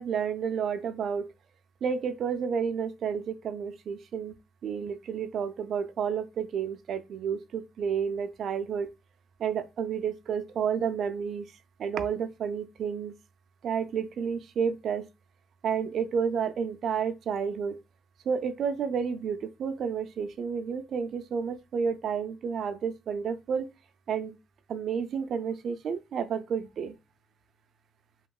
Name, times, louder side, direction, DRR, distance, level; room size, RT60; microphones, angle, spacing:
voice 1, 0.0-1.3 1.8-4.3 4.6-8.9 9.4-11.5 11.8-13.1 13.6-15.1 15.6-17.8 18.3-23.7 24.1-24.4 24.7-27.0, right 7 dB, 60° right, 0.3 m, -31 dB
3.0 x 2.7 x 2.2 m
cardioid pair, 100°, 0 cm